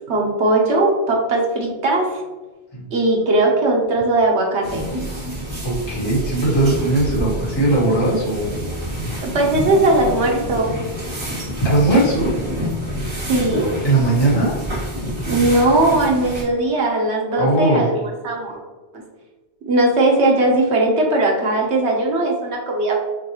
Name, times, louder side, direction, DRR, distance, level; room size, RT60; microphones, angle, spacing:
voice 1, 0.1-2.2 2.9-4.8 9.2-10.7 11.2-11.4 13.2-13.6 15.3-18.6 19.7-23.0, right 2 dB, 75° right, -1 dB, 1.2 m, -18 dB
sound 1, 4.6-16.4, equal, 55° right, 1.8 m, -28 dB
voice 2, 5.6-8.5 11.6-12.3 13.8-14.6 17.4-17.9, right 2 dB, 25° left, -6 dB, 1.3 m, -18 dB
6.3 x 2.4 x 3.0 m, 1.2 s
omnidirectional pair, 1.1 m